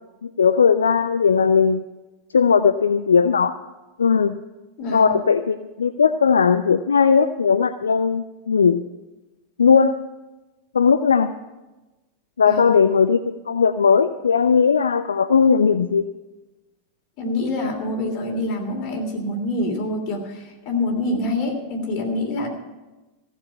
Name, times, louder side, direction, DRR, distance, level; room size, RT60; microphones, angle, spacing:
voice 1, 0.2-1.8 2.3-3.5 4.0-4.4 4.9-8.8 9.6-10.0 10.7-11.3 12.4-16.0, left 6 dB, 70° left, 11 dB, 0.4 m, -18 dB
voice 2, 4.8-5.1 12.5-12.7 17.2-22.5, left 2 dB, 40° left, 2 dB, 3.1 m, -26 dB
15.5 x 6.9 x 8.6 m, 1.1 s
figure-of-eight pair, 90°, 0 cm